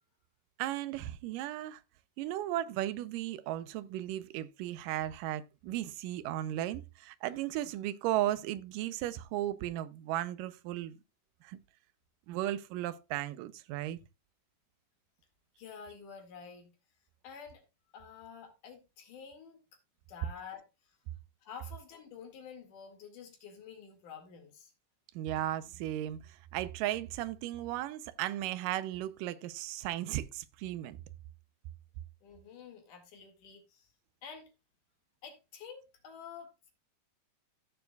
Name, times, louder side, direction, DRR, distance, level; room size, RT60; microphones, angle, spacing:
voice 1, 0.6-1.8 2.2-11.0 11.4-11.6 12.3-14.0 25.2-31.0, right 13 dB, 90° right, 2.3 m, -35 dB
voice 2, 15.6-16.7 17.2-17.6 17.9-19.6 20.1-21.0 21.4-24.7 32.2-33.9 34.2-34.5 35.2-36.7, left 6 dB, 70° left, 3.6 m, -49 dB
15.5 x 7.0 x 2.3 m
omnidirectional pair, 3.7 m